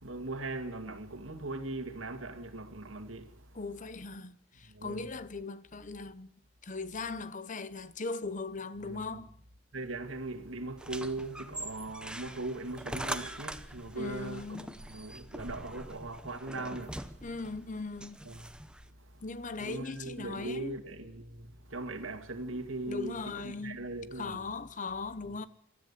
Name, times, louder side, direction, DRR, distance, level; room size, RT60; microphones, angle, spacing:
voice 1, 0.0-3.5 4.7-5.1 8.8-9.3 9.7-17.0 18.2-18.5 19.6-24.4 25.2-25.4, right 2 dB, 80° right, 2.3 m, -40 dB
voice 2, 3.5-6.3 6.6-9.3 13.9-14.7 17.2-18.2 19.2-20.8 22.9-23.8 24.2-25.5, left 3 dB, 40° left, 1.0 m, -39 dB
sound 1, 10.8-18.9, right 1 dB, 5° right, 1.0 m, -43 dB
26.5 x 13.5 x 8.4 m
head